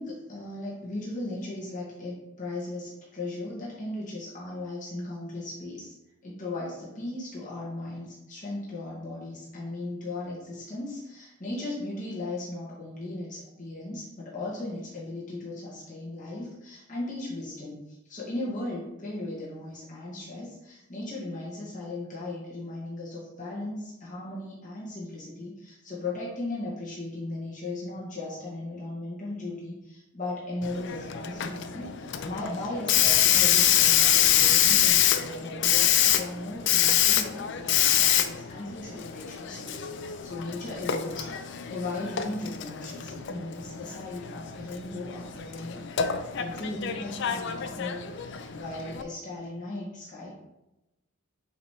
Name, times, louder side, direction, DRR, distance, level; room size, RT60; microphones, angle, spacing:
voice 1, 0.0-5.9 6.2-39.8 40.2-45.8 46.4-50.3, left 2 dB, 40° left, -7 dB, 1.7 m, -37 dB
Hiss, 30.6-49.0, left 10 dB, 55° left, 0.4 m, -26 dB
6.7 x 3.2 x 4.5 m, 0.97 s
head